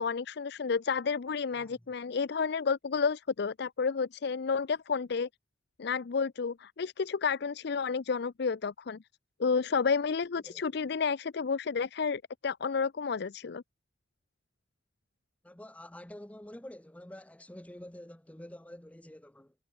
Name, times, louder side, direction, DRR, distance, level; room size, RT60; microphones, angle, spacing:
voice 1, 0.0-5.3 5.8-9.0 9.4-13.6, left 5 dB, 60° left, 0.5 m, -31 dB
voice 2, 15.4-19.5, left 1 dB, 5° left, 0.7 m, -48 dB
head